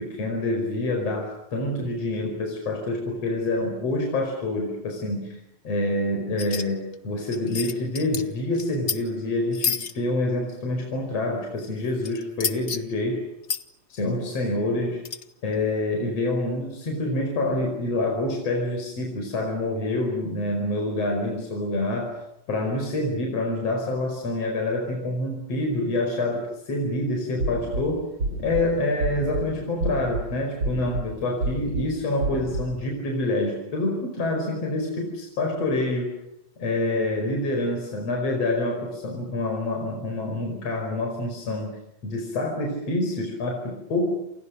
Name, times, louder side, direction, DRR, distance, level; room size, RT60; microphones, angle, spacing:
voice 1, 0.0-5.4 5.6-13.2 13.9-15.0 15.4-22.2 22.5-28.0 28.4-36.1 36.6-41.7 42.0-44.1, left 2 dB, 55° left, 2 dB, 6.2 m, -27 dB
sound 1, 6.4-6.6 6.9-7.0 7.2-8.2 8.5-9.0 9.5-9.9 12.0-12.8 13.4-13.6 15.0-15.2, left 6 dB, 90° left, 0.6 m, -29 dB
sound 2, 27.4-27.8 28.2-28.6 29.0-29.4 29.8-30.2 30.6-31.0 31.4-31.8 32.2-32.6, right 2 dB, 40° right, 4.6 m, -28 dB
29.0 x 29.0 x 6.6 m, 0.81 s
omnidirectional pair, 3.3 m